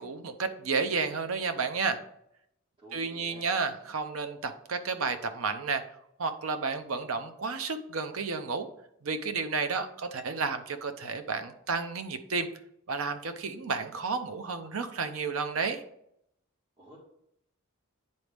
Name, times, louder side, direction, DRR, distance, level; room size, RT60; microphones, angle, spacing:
voice 1, 0.0-2.0 2.9-5.8 6.2-8.7 9.0-12.5 12.9-15.8, right 4 dB, 75° right, 8 dB, 0.7 m, -31 dB
voice 2, 2.8-3.4 16.8-17.0, right 1 dB, 25° right, -8 dB, 2.0 m, -50 dB
9.5 x 4.1 x 3.4 m, 0.75 s
head